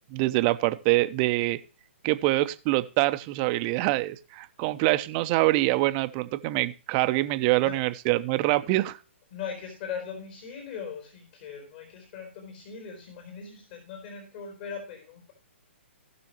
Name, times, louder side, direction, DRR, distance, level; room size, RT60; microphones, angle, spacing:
voice 1, 0.1-1.6 2.0-9.0, right 18 dB, 35° right, 11 dB, 0.9 m, -25 dB
voice 2, 9.3-15.3, left 6 dB, 45° left, 3 dB, 4.2 m, -39 dB
18.5 x 6.2 x 3.0 m, 0.36 s
hypercardioid pair, 135°, 7 cm